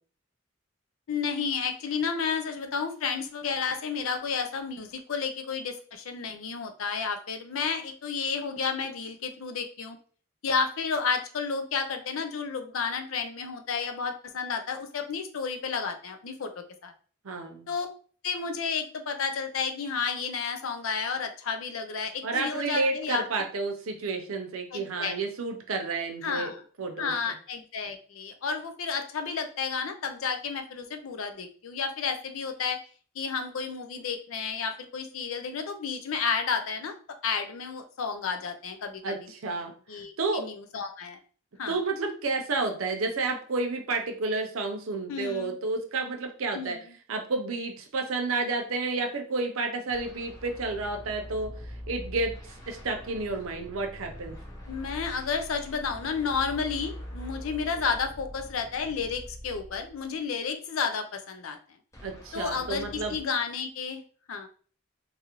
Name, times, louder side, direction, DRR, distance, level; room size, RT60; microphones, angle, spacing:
voice 1, 1.1-10.0 10.4-16.9 17.7-17.9 18.2-23.2 24.7-25.2 26.2-26.6 27.0-32.8 33.2-37.0 37.2-39.3 39.9-41.2 41.6-41.8 45.1-45.5 46.5-46.8 54.7-61.6 62.3-64.0 64.3-64.5, left 5 dB, 85° left, 7 dB, 0.5 m, -31 dB
voice 2, 17.2-17.7 22.2-26.5 26.8-27.3 39.0-40.4 41.7-46.8 47.1-52.3 52.7-54.4 62.0-63.2, right 3 dB, 85° right, 3 dB, 0.6 m, -31 dB
sound 1, 49.9-60.1 61.9-63.2, equal, 15° left, 0.6 m, -43 dB
2.6 x 2.5 x 2.9 m, 0.43 s
head